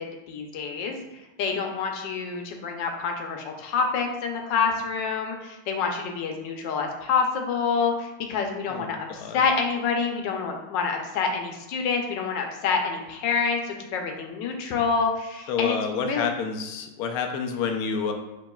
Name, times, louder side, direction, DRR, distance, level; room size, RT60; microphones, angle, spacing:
voice 1, 0.0-16.3, left 5 dB, 70° left, 3 dB, 1.3 m, -27 dB
voice 2, 8.7-9.4 15.5-18.1, left 5 dB, 90° left, 4 dB, 0.8 m, -29 dB
7.7 x 3.0 x 2.3 m, 1.0 s
omnidirectional pair, 2.2 m